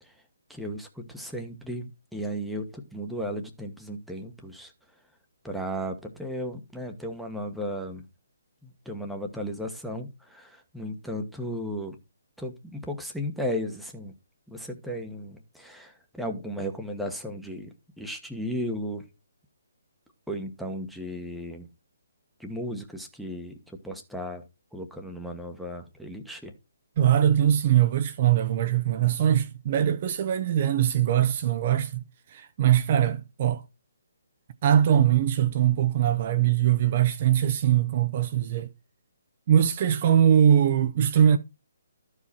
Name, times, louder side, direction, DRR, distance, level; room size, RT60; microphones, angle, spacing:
voice 1, 0.5-4.7 5.4-8.1 8.6-12.0 12.4-14.1 14.5-19.0 20.3-21.7 22.4-24.4 24.7-26.5, equal, ahead, 1.3 m, -35 dB
voice 2, 27.0-32.0 32.3-33.6 34.6-38.7 39.5-41.4, right 10 dB, 40° right, 0.7 m, -22 dB
13.0 x 4.9 x 4.2 m
figure-of-eight pair, 140°, 0 cm